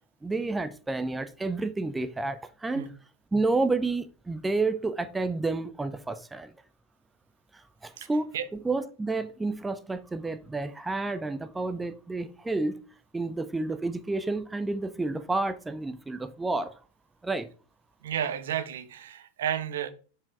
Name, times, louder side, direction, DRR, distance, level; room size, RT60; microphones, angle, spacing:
voice 1, 0.2-2.9 3.3-6.5 7.5-12.8 13.1-16.8 17.2-17.5, right 3 dB, 10° right, 0.7 m, -30 dB
voice 2, 18.0-19.9, right 9 dB, 60° right, 0.9 m, -32 dB
7.2 x 4.9 x 4.6 m
figure-of-eight pair, 90°, 0 cm